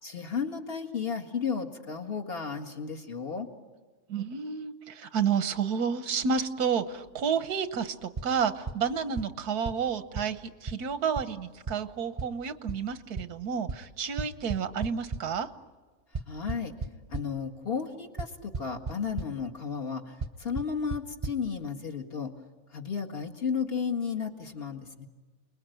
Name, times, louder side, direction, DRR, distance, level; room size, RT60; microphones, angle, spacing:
voice 1, 0.0-3.5 16.3-16.7 17.1-22.3 22.7-25.1, left 6 dB, 40° left, 2 dB, 2.0 m, -33 dB
voice 2, 4.1-15.5, right 6 dB, 90° right, 11 dB, 1.6 m, -30 dB
sound 1, 8.2-8.3 8.7-8.8 9.2-9.3 9.6-9.7 10.2-10.3 10.7-10.8 11.2-11.3 11.7-11.8 12.2-12.3 12.7-12.8 13.2-13.3 13.7-13.8 14.2-15.2 16.1-17.2 18.2-18.3 18.5-18.9 19.2-19.3 20.2-20.3 20.6-20.7 20.9-21.0 21.2-21.3, right 4 dB, 25° right, 0.8 m, -32 dB
29.5 x 21.0 x 9.2 m, 1.4 s
omnidirectional pair, 1.6 m